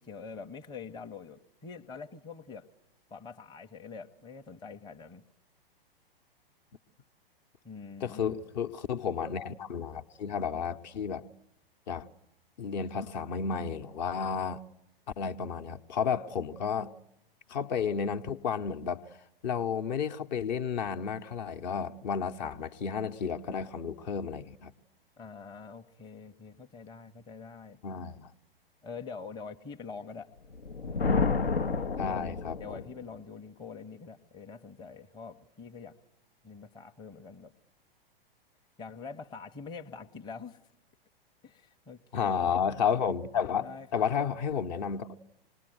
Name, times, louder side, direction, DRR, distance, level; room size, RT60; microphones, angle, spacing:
voice 1, 0.0-2.7 3.1-5.2 7.6-8.4 25.2-27.8 28.8-30.3 30.8-31.1 31.8-32.2 32.6-35.9 36.4-37.5 38.8-40.7 41.4-42.8 43.6-44.0, left 5 dB, 15° left, 4 dB, 0.8 m, -45 dB
voice 2, 8.0-11.2 11.9-12.1 12.6-14.6 15.2-16.9 17.5-19.0 19.4-24.7 27.8-28.3 32.0-32.8 42.1-45.2, left 7 dB, 45° left, 7 dB, 1.0 m, -32 dB
Thunder, 30.5-32.9, left 4 dB, 80° left, 0.9 m, -29 dB
26.5 x 20.0 x 7.9 m, 0.90 s
figure-of-eight pair, 105°, 30 cm